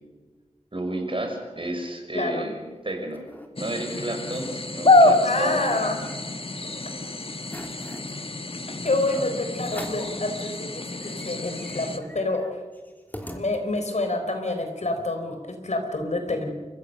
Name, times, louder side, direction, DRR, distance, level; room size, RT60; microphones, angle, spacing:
voice 1, 0.7-3.2 3.6-5.7 8.8-9.3, right 1 dB, 45° right, 3 dB, 5.9 m, -31 dB
voice 2, 2.1-2.5 5.2-6.0 8.8-12.5 13.3-16.5, left 2 dB, 70° left, 5 dB, 4.3 m, -27 dB
sound 1, 2.6-3.5 3.9-4.0 4.2-4.6 5.0-6.6 7.0-7.1 7.4-8.1 8.8-9.0 9.6-10.2 10.6-10.7 10.9-14.0, equal, 15° left, 3.3 m, -43 dB
sound 2, 3.6-12.0, left 2 dB, 50° left, 1.7 m, -26 dB
30.0 x 15.0 x 6.8 m, 1.4 s
wide cardioid pair, 50°, 12 cm